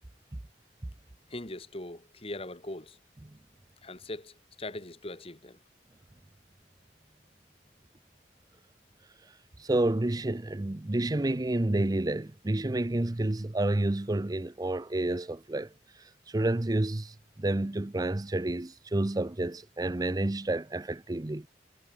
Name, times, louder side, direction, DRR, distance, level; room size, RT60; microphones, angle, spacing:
voice 1, 1.3-3.0 3.8-5.6, left 2 dB, 35° left, 2.2 m, -41 dB
voice 2, 9.6-15.7 16.3-21.5, right 1 dB, 20° right, 0.6 m, -29 dB
head